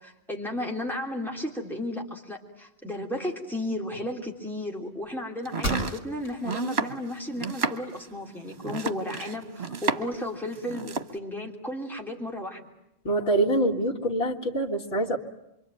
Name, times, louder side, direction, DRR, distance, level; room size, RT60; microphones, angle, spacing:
voice 1, 0.0-12.6, left 1 dB, ahead, 0 dB, 3.2 m, -34 dB
sound 1, 5.0-5.1 5.6-6.4 6.9-7.0 7.5-8.4, equal, 55° left, 4.4 m, -34 dB
Domestic sounds home sounds, 5.4-10.2 10.5-11.1, right 4 dB, 80° right, 1.5 m, -31 dB
voice 2, 13.0-15.2, right 1 dB, 75° left, 1 dB, 2.1 m, -25 dB
26.5 x 24.0 x 9.1 m, 0.84 s
omnidirectional pair, 1.1 m